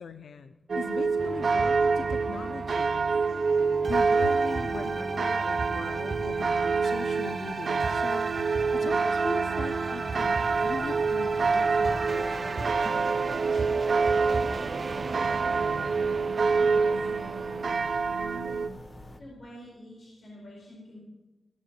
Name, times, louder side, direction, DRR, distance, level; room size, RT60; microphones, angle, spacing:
voice 1, 0.0-3.1 3.8-13.7, left 5 dB, 85° left, 10 dB, 0.7 m, -40 dB
sound 1, 0.7-18.7, right 4 dB, 60° right, 0.7 m, -27 dB
sound 2, 1.2-17.6, right 3 dB, 45° right, 0.9 m, -36 dB
sound 3, 10.2-19.2, left 1 dB, 25° left, 1.1 m, -47 dB
voice 2, 16.5-17.6 18.2-18.6 19.2-21.0, equal, 55° left, -4 dB, 4.7 m, -47 dB
16.5 x 7.6 x 8.0 m, 1.1 s
wide cardioid pair, 95°, 0 cm